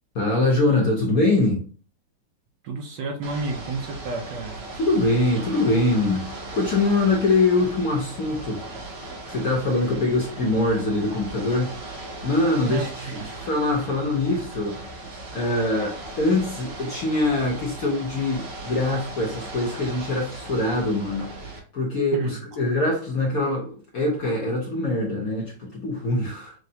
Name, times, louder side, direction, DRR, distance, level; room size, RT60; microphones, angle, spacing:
voice 1, 0.1-1.6 4.8-8.6 9.3-11.7 12.2-14.8 15.3-21.5 21.7-26.5, left 2 dB, 55° left, -2 dB, 1.0 m, -23 dB
voice 2, 2.6-4.6 12.7-13.3 22.1-22.3, right 3 dB, 70° right, 2 dB, 1.2 m, -31 dB
Ocean / Boat Water vehicle, 3.2-21.6, right 2 dB, 45° right, 0.8 m, -38 dB
6.3 x 2.3 x 2.7 m, 0.41 s
omnidirectional pair, 2.4 m